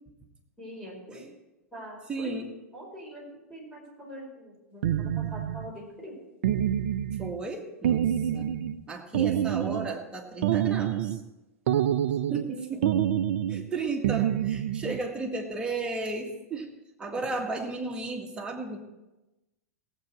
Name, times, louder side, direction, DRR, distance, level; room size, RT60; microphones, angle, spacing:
voice 1, 0.6-1.3 1.7-2.3 2.7-3.2 3.5-6.2 12.5-12.8, equal, 5° left, -3 dB, 4.9 m, -43 dB
voice 2, 2.1-2.5 7.2-8.5 8.9-11.2 12.3-12.8 13.5-16.7 17.0-18.8, right 3 dB, 10° right, 0 dB, 1.9 m, -34 dB
sound 1, 4.8-5.7 6.4-7.4 7.8-8.8 9.1-10.0 10.4-11.2 11.7-12.5 12.8-13.7 14.0-15.0, right 10 dB, 55° right, 0.6 m, -27 dB
17.0 x 8.3 x 4.5 m, 1.0 s
figure-of-eight pair, 95°, 8 cm